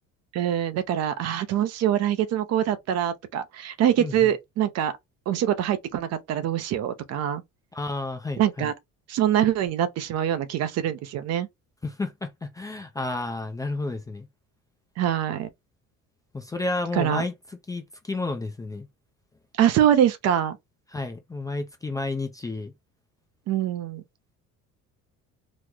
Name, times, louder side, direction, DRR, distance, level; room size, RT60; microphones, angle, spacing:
voice 1, 0.3-4.9 5.3-7.4 8.4-8.7 9.1-11.5 15.0-15.5 16.9-17.3 19.6-20.6 23.5-24.0, right 10 dB, 55° right, 0.6 m, -24 dB
voice 2, 4.0-4.3 7.7-8.7 11.8-14.3 16.3-17.3 17.7-18.9 20.9-22.7, left 2 dB, 10° left, 0.4 m, -31 dB
3.1 x 2.0 x 3.6 m
cardioid pair, 150°, 31 cm